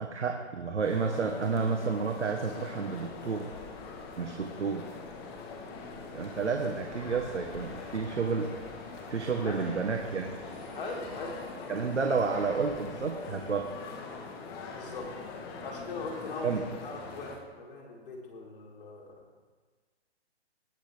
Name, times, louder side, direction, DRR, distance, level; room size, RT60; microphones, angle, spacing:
voice 1, 0.0-3.5 4.2-4.9 6.1-8.5 9.1-10.3 11.7-13.7 16.4-16.6, right 5 dB, 90° right, 3 dB, 1.4 m, -30 dB
sound 1, 0.8-17.4, left 4 dB, 20° left, 1.3 m, -43 dB
sound 2, 6.1-11.5, right 1 dB, 5° right, 3.7 m, -51 dB
voice 2, 10.7-11.4 14.7-15.1 15.6-19.2, left 3 dB, 50° left, -1 dB, 3.4 m, -40 dB
19.0 x 9.9 x 3.5 m, 1.4 s
hypercardioid pair, 150°, 34 cm